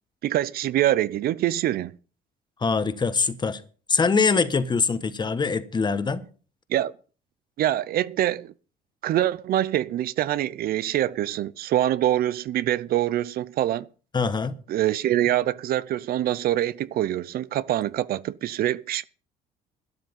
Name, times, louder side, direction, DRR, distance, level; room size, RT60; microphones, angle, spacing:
voice 1, 0.2-1.9 6.7-6.9 7.6-8.5 9.0-13.9 14.7-19.1, right 13 dB, 65° right, 0.6 m, -25 dB
voice 2, 2.6-3.6 3.9-6.2 14.1-14.5, left 5 dB, 25° left, 1.1 m, -23 dB
12.5 x 10.5 x 5.4 m
cardioid pair, 110°, 17 cm